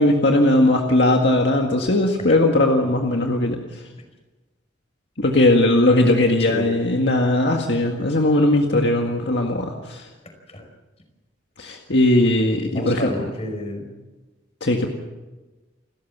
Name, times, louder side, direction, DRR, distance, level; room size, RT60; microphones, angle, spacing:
voice 1, 0.0-3.6 5.2-10.1 11.6-13.1 14.6-14.9, left 1 dB, 60° left, 2 dB, 1.9 m, -18 dB
voice 2, 12.7-14.0, left 1 dB, 35° left, 4 dB, 5.2 m, -30 dB
29.0 x 13.5 x 7.5 m, 1.2 s
head